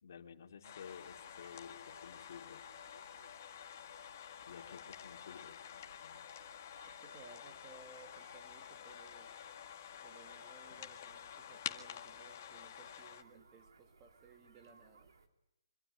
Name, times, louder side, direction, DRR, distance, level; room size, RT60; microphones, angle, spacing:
voice 1, 0.0-2.7 3.7-3.8 4.5-6.2 10.7-10.9, left 7 dB, 50° left, 4 dB, 3.1 m, -53 dB
sound 1, 0.6-13.2, left 9 dB, 35° left, 1.7 m, -49 dB
sound 2, 0.8-15.3, right 4 dB, 85° right, 3.2 m, -65 dB
voice 2, 6.8-9.4 10.0-15.1, right 5 dB, 15° right, 6 dB, 2.5 m, -60 dB
25.5 x 22.5 x 9.5 m, 0.86 s
hypercardioid pair, 170°, 2 cm